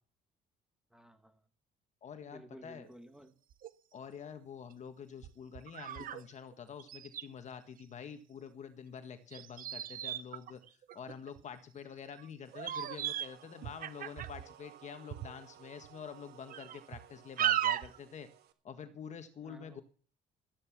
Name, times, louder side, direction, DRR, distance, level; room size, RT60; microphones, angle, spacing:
voice 1, 0.9-1.4 2.3-3.4 19.4-19.8, right 1 dB, 5° right, 8 dB, 2.0 m, -54 dB
voice 2, 2.0-2.9 3.9-18.3 18.6-19.8, left 7 dB, 45° left, 8 dB, 1.6 m, -47 dB
sound 1, 2.8-2.9 3.5-3.7 4.3-4.4 5.2-6.2 6.5-6.6 6.8-7.2 9.3-11.4 12.1-12.3 12.5-13.3 13.6-14.5 15.1-15.3 15.8-15.9 16.5-17.0 17.4-18.0, right 11 dB, 55° right, 0.9 m, -36 dB
sound 2, 12.4-18.5, right 12 dB, 75° right, 1.6 m, -58 dB
13.5 x 9.7 x 6.1 m, 0.41 s
cardioid pair, 110°, 17 cm